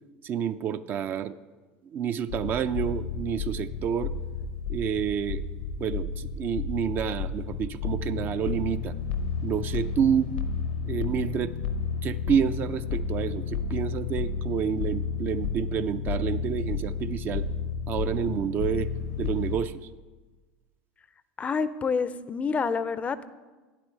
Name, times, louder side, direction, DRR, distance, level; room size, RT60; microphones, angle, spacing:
voice 1, 0.2-1.4 1.8-4.1 4.7-5.4 5.8-8.9 9.4-10.3 10.8-11.5 12.0-17.5 17.9-18.9 19.2-19.9, right 8 dB, 40° right, 12 dB, 0.4 m, -29 dB
sound 1, 2.3-19.6, left 5 dB, 75° left, 0.7 m, -32 dB
voice 2, 21.4-23.3, left 5 dB, 25° left, 15 dB, 0.4 m, -28 dB
11.5 x 10.0 x 3.2 m, 1.3 s
hypercardioid pair, 80°, 5 cm